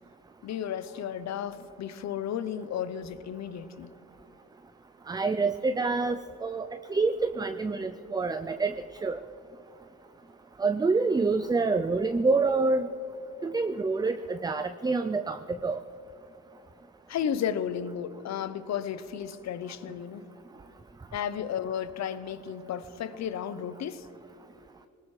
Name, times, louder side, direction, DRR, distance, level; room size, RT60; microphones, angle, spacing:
voice 1, 0.4-3.9 17.1-20.2 21.1-24.1, left 8 dB, 60° left, 14 dB, 0.8 m, -33 dB
voice 2, 5.1-8.8 9.0-9.2 10.6-12.9 13.4-15.8, right 3 dB, 15° right, 9 dB, 0.4 m, -27 dB
22.0 x 19.0 x 3.3 m, 2.7 s
cardioid pair, 90°, 30 cm